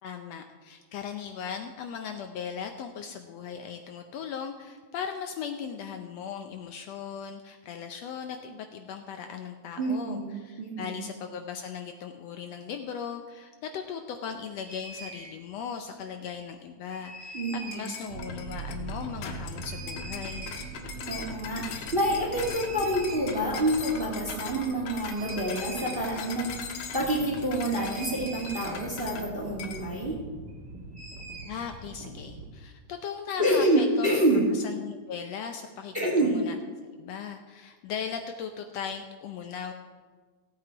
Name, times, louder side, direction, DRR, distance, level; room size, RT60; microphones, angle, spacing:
voice 1, 0.0-17.4 17.7-20.5 31.4-34.1 34.5-36.6 36.9-39.7, left 7 dB, 75° left, 6 dB, 1.7 m, -38 dB
voice 2, 9.8-11.0 17.3-17.9 21.1-30.2 33.4-34.4 35.9-36.3, right 1 dB, 20° right, -2 dB, 1.8 m, -27 dB
sound 1, 14.7-15.4 16.9-18.1 19.7-20.8 22.4-23.7 24.0-24.1 24.2-32.5, right 2 dB, 45° right, 1.7 m, -43 dB
sound 2, 17.7-29.3 29.6-29.9, left 7 dB, 90° left, 2.4 m, -41 dB
sound 3, 18.1-30.9, right 3 dB, 70° right, 2.8 m, -43 dB
16.5 x 8.5 x 4.5 m, 1.4 s
omnidirectional pair, 3.3 m